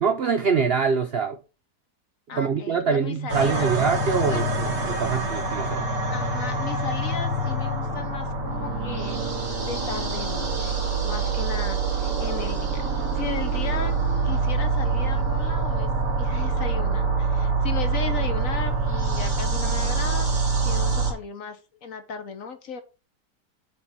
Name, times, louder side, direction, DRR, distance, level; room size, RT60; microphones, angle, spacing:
voice 1, 0.0-1.4 2.3-5.9, right 6 dB, 75° right, 0.5 m, -24 dB
voice 2, 2.3-3.7 4.3-4.6 6.1-9.2 9.6-10.8 11.0-13.9 14.2-15.9 16.2-22.8, left 6 dB, 55° left, 1.2 m, -36 dB
sound 1, 3.3-21.1, right 3 dB, 55° right, 2.4 m, -25 dB
7.6 x 3.9 x 4.5 m
omnidirectional pair, 1.9 m